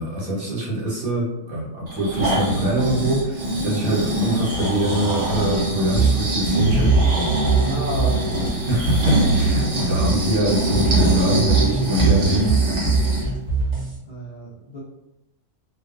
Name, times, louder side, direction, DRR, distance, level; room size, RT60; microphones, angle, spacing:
voice 1, 0.0-7.0 8.7-12.5, right 1 dB, 75° right, -5 dB, 1.2 m, -24 dB
Breathing, 1.9-13.3 13.7-13.8, right 1 dB, 55° right, 1.1 m, -23 dB
sound 1, 3.5-13.3, right 1 dB, 15° right, 0.6 m, -34 dB
sound 2, 6.0-14.0, right 4 dB, 35° right, 0.9 m, -22 dB
voice 2, 7.6-8.6 14.1-14.8, right 1 dB, 70° left, -5 dB, 0.4 m, -31 dB
2.4 x 2.3 x 2.4 m, 0.89 s
omnidirectional pair, 1.5 m